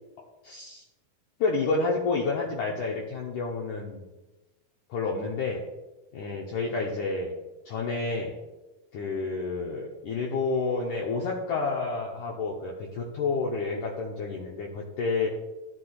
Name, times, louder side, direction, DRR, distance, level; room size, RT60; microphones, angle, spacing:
voice 1, 0.4-0.8 1.4-4.1 4.9-5.6 6.1-7.3 7.7-8.3 8.9-15.3, left 4 dB, 75° left, -1 dB, 1.8 m, -29 dB
14.5 x 8.2 x 2.4 m, 1.1 s
omnidirectional pair, 4.6 m